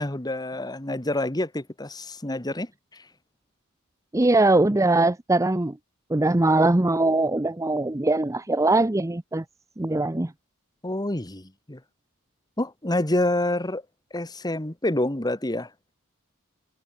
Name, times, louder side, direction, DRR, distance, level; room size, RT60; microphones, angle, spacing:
voice 1, 0.0-3.1 10.8-11.8 12.6-13.8 14.1-15.7, left 1 dB, 20° left, 1.6 m, -27 dB
voice 2, 4.1-5.8 6.1-9.4 9.8-10.3, right 2 dB, 15° right, 0.6 m, -21 dB
head